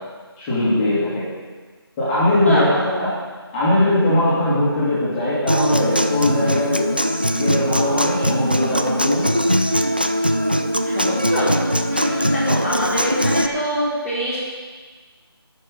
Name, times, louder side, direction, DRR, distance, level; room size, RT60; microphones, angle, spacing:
voice 1, 0.4-1.3 2.0-3.1 3.5-6.9 7.3-9.3, left 1 dB, 10° left, -10 dB, 2.5 m, -20 dB
voice 2, 2.4-3.1 10.8-11.5 11.9-14.4, equal, 5° right, -15 dB, 1.7 m, -24 dB
Human voice / Acoustic guitar, 5.5-13.5, equal, 25° right, 0.3 m, -21 dB
11.0 x 7.3 x 9.4 m, 1.4 s
figure-of-eight pair, 170°, 13 cm